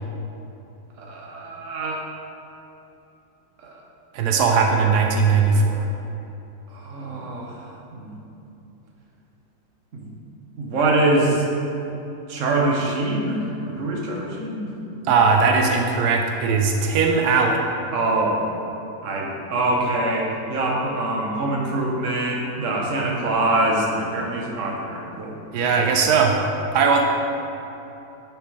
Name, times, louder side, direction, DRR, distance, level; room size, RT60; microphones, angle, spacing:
voice 1, 1.0-2.0 3.6-3.8 6.7-8.2 9.9-10.1 10.6-11.4 12.3-14.7 17.9-18.4 19.0-25.4, right 2 dB, 55° right, -2 dB, 1.3 m, -24 dB
voice 2, 4.1-5.9 15.1-17.6 25.5-26.4 26.7-27.0, right 5 dB, 90° right, 2 dB, 1.2 m, -19 dB
9.3 x 5.1 x 3.2 m, 3.0 s
omnidirectional pair, 1.7 m